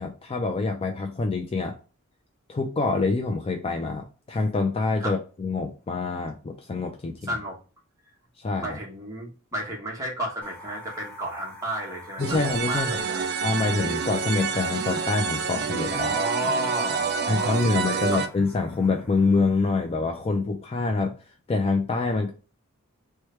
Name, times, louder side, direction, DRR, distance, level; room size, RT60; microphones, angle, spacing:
voice 1, 0.0-1.8 2.5-7.3 8.4-8.8 12.2-13.0 13.4-16.1 17.3-21.1 21.5-22.3, left 3 dB, 25° left, 0.3 m, -26 dB
voice 2, 7.3-7.6 8.6-13.3 16.0-18.2, right 1 dB, 15° right, 1.1 m, -32 dB
sound 1, 10.4-20.1, left 1 dB, 10° left, 0.9 m, -47 dB
sound 2, 12.2-18.3, right 6 dB, 50° right, 0.4 m, -28 dB
3.2 x 2.2 x 4.3 m
head